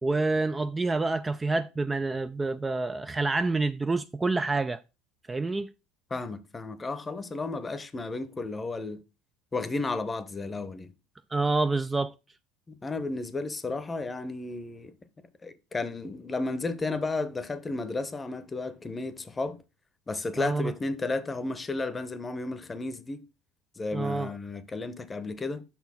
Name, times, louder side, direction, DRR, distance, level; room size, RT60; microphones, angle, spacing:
voice 1, 0.0-4.8 5.3-5.7 11.3-12.1 20.4-20.7 23.9-24.3, right 3 dB, 20° right, 0.3 m, -27 dB
voice 2, 6.1-9.0 9.5-10.9 12.7-14.9 15.4-19.6 20.1-23.3 23.8-25.6, left 3 dB, 20° left, 0.8 m, -33 dB
5.7 x 4.2 x 5.4 m
hypercardioid pair, 80°, 0 cm